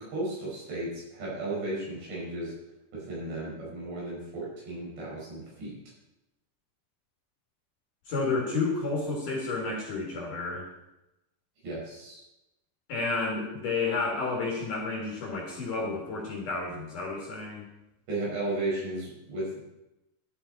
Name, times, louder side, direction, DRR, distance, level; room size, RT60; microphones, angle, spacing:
voice 1, 0.0-2.5 2.9-5.7 11.6-12.2 18.1-19.6, right 2 dB, 70° right, -6 dB, 7.4 m, -34 dB
voice 2, 8.1-10.7 12.9-17.6, left 3 dB, 50° left, -2 dB, 3.1 m, -31 dB
12.5 x 11.0 x 4.2 m, 0.94 s
omnidirectional pair, 5.3 m